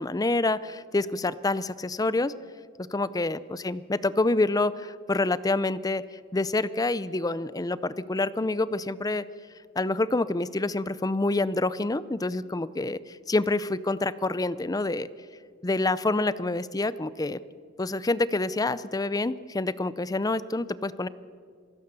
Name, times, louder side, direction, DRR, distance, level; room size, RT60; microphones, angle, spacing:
voice 1, 0.0-2.3 2.9-9.2 9.8-15.1 15.6-17.4 17.8-21.1, left 2 dB, 20° left, 17 dB, 0.5 m, -27 dB
27.0 x 16.5 x 6.9 m, 2.2 s
head